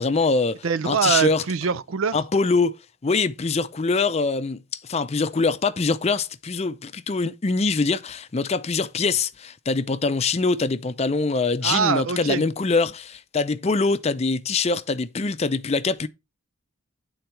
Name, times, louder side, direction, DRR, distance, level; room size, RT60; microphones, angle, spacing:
voice 1, 0.0-1.4 2.1-2.7 3.0-16.1, left 4 dB, 30° left, 0.5 m, -23 dB
voice 2, 0.6-2.2 11.6-12.4, right 6 dB, 75° right, 0.5 m, -23 dB
10.0 x 3.9 x 4.5 m
head